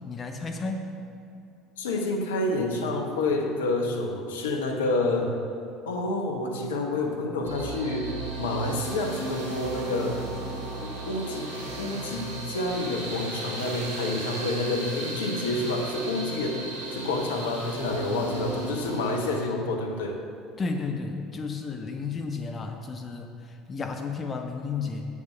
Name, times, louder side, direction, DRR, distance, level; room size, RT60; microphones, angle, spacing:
voice 1, 0.1-1.0 20.6-25.0, left 4 dB, 30° left, 4 dB, 0.6 m, -33 dB
voice 2, 1.8-5.3 5.9-8.1 8.4-10.3 10.8-20.2, left 2 dB, 70° left, 2 dB, 0.9 m, -28 dB
sound 1, 7.4-19.4, right 2 dB, 70° right, 1.7 m, -36 dB
8.5 x 6.4 x 5.6 m, 2.6 s
figure-of-eight pair, 65°, 0 cm